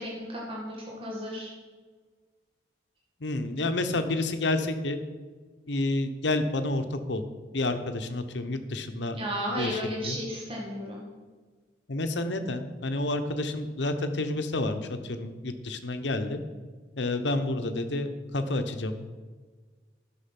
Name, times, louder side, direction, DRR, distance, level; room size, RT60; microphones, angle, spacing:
voice 1, 0.0-1.5 9.1-11.1, equal, 30° right, -3 dB, 1.9 m, -34 dB
voice 2, 3.2-5.0 5.7-7.2 7.5-9.2 9.6-10.2 11.9-16.4 17.0-19.1, left 2 dB, 75° left, 8 dB, 0.9 m, -29 dB
11.5 x 6.2 x 5.9 m, 1.4 s
head